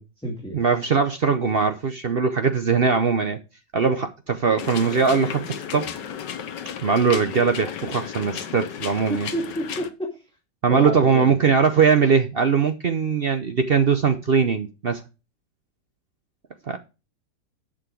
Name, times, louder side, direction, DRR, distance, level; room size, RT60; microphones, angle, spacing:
voice 1, 0.0-0.6 9.1-10.2 10.7-11.3, equal, 5° left, 2.0 m, -30 dB
voice 2, 0.5-3.4 3.7-5.9 6.8-9.3 10.6-15.0 16.7-16.8, right 5 dB, 60° right, 0.6 m, -21 dB
sound 1, 4.6-9.9, left 8 dB, 75° left, 1.6 m, -34 dB
10.5 x 6.3 x 4.7 m
omnidirectional pair, 2.0 m